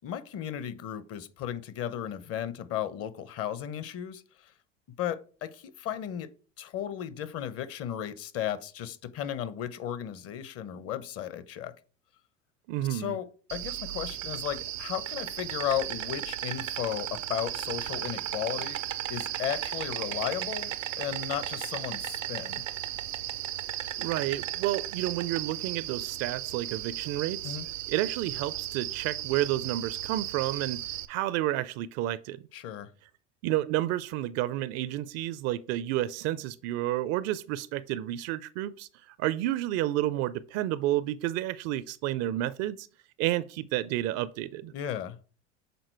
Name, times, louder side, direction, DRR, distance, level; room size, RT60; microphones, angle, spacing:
voice 1, 0.0-4.2 5.0-6.3 6.6-11.7 12.9-18.8 19.1-22.6 27.4-27.7 32.5-32.9 44.7-45.2, left 10 dB, 40° left, 0.7 m, -35 dB
voice 2, 12.7-13.2 23.8-27.6 27.9-30.8 31.1-32.4 33.4-38.9 39.2-42.9 43.2-44.7, right 14 dB, 45° right, 0.4 m, -30 dB
Insect, 13.5-31.1, right 13 dB, 85° right, 0.6 m, -35 dB
6.8 x 3.8 x 4.5 m
hypercardioid pair, 85°, 37 cm